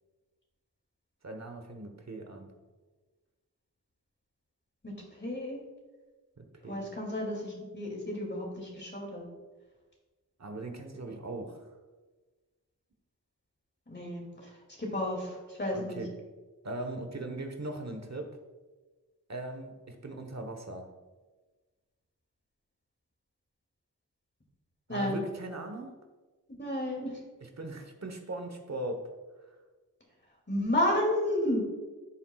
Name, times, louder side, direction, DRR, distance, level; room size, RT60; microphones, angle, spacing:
voice 1, 1.2-2.5 6.4-6.9 10.4-11.6 15.7-16.1 16.6-18.3 19.3-20.9 24.9-25.9 27.4-29.0 29.5-29.6, right 2 dB, 45° right, 5 dB, 1.2 m, -39 dB
voice 2, 4.8-5.6 6.7-9.2 13.9-16.0 24.9-25.2 26.6-27.2 30.5-31.6, left 1 dB, 30° left, -1 dB, 2.5 m, -32 dB
13.0 x 7.1 x 2.4 m, 1.3 s
cardioid pair, 45°, 37 cm